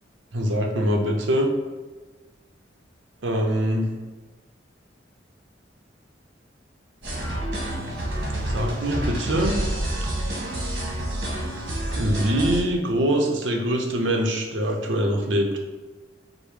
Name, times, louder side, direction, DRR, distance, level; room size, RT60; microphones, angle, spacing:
voice 1, 0.3-1.5 3.2-3.9 8.4-9.5 12.0-15.6, equal, 90° right, 2 dB, 0.7 m, -23 dB
sound 1, 7.0-12.6, right 1 dB, 70° right, 1.5 m, -28 dB
5.1 x 2.1 x 4.8 m, 1.3 s
head